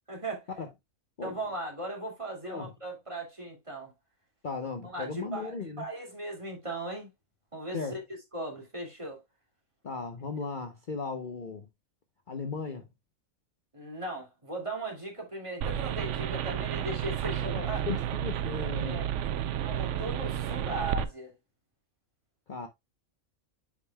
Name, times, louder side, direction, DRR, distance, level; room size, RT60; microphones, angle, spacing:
voice 1, 0.1-0.4 1.2-3.9 4.8-7.1 7.5-8.0 8.3-9.2 13.7-17.8 18.9-19.0 19.6-21.3, right 2 dB, 20° right, 2.4 m, -38 dB
voice 2, 4.4-5.9 7.7-8.0 9.8-11.7 12.3-12.8 17.4-19.0 22.5-22.7, left 5 dB, 40° left, 0.9 m, -36 dB
sound 1, 15.6-21.0, right 10 dB, 70° right, 0.9 m, -31 dB
9.7 x 5.3 x 2.2 m
omnidirectional pair, 1.4 m